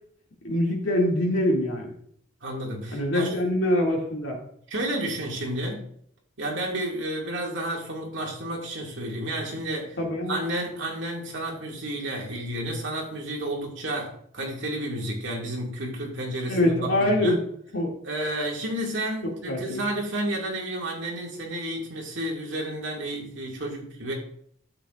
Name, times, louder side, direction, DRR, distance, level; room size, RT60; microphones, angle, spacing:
voice 1, 0.4-1.9 2.9-4.4 10.0-10.4 16.5-17.4 17.7-17.9 19.5-19.8, left 1 dB, 75° left, -1 dB, 2.3 m, -24 dB
voice 2, 2.4-3.3 4.7-5.9 6.4-10.0 10.3-17.4 18.0-24.1, right 1 dB, 70° right, -1 dB, 2.1 m, -31 dB
12.0 x 7.4 x 2.5 m, 0.64 s
head